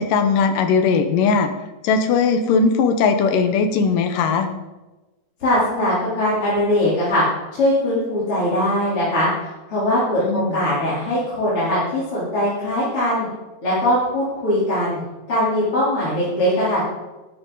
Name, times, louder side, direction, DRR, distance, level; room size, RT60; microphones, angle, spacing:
voice 1, 0.0-1.5 1.8-4.5 10.2-10.6, left 5 dB, 75° left, 7 dB, 2.7 m, -18 dB
voice 2, 5.4-7.2 7.5-9.3 9.7-13.3 13.6-15.0 15.3-16.8, left 1 dB, 40° left, -10 dB, 4.5 m, -21 dB
13.0 x 12.0 x 4.0 m, 1.1 s
omnidirectional pair, 3.9 m